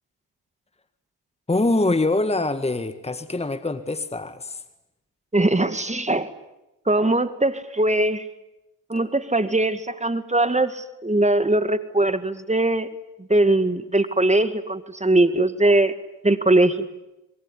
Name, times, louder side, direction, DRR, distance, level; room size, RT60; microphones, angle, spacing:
voice 1, 1.5-4.6, left 2 dB, 15° left, 11 dB, 1.8 m, -24 dB
voice 2, 5.3-6.3 6.9-8.3 8.9-12.9 13.3-15.9 16.2-16.9, right 2 dB, 15° right, 11 dB, 2.0 m, -21 dB
26.0 x 22.5 x 10.0 m, 0.94 s
hypercardioid pair, 50°, 45 cm